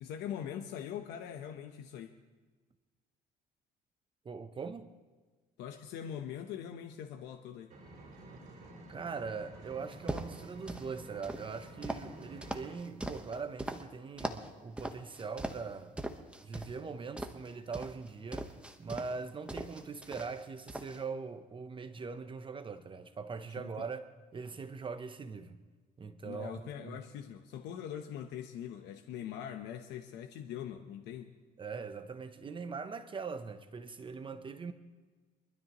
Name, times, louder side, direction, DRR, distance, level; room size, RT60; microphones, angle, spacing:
voice 1, 0.0-2.1 5.6-7.7 23.6-23.7 26.2-31.3, left 9 dB, 85° left, 1.0 m, -42 dB
voice 2, 4.2-4.9 8.9-16.0 16.4-18.5 18.8-24.0 24.3-25.6 26.0-27.0 31.6-34.7, right 5 dB, 30° right, 0.8 m, -41 dB
Engine, 7.7-12.7, right 1 dB, 50° right, 5.2 m, -51 dB
sound 1, 9.9-10.9 11.2-13.8 14.2-14.5 14.8-15.7 16.0-16.7 17.2-19.2 19.5-20.4 20.7-21.0, right 1 dB, 5° right, 1.2 m, -40 dB
24.5 x 13.0 x 3.1 m
cardioid pair, 110°, 17 cm